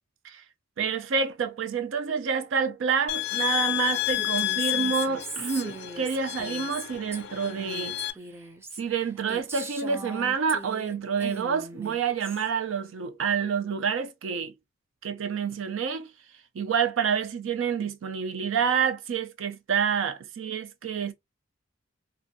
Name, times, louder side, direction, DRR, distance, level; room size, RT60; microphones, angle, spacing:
voice 1, 0.8-8.0 8.8-14.5 15.0-16.1 16.5-21.1, right 6 dB, 75° right, 0.4 m, -28 dB
sound 1, 3.1-8.1, left 17 dB, 60° left, 0.3 m, -30 dB
Female speech woman speaking, 4.1-10.9 11.2-12.5, right 2 dB, 15° right, 0.3 m, -40 dB
2.6 x 2.2 x 2.6 m
head